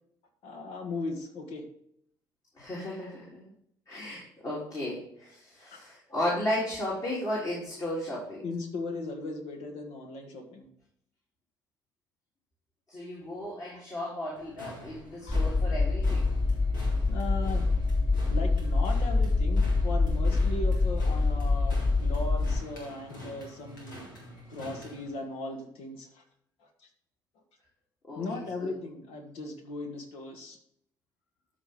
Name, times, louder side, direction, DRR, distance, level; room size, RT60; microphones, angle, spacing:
voice 1, 0.4-1.6 3.9-4.0 5.7-5.8 8.4-10.7 15.2-15.4 17.1-17.7 18.3-24.1 24.5-26.2 26.8-26.9 28.1-30.6, left 2 dB, 65° left, 4 dB, 1.8 m, -38 dB
voice 2, 2.6-3.5 3.9-8.4 12.9-16.3 28.0-28.7, left 1 dB, 35° left, -6 dB, 3.5 m, -34 dB
sound 1, 14.3-25.2, equal, 85° left, 1.9 m, -47 dB
sound 2, 15.3-22.6, left 3 dB, 5° left, 0.5 m, -25 dB
12.5 x 4.5 x 3.7 m, 0.69 s
hypercardioid pair, 50°, 10 cm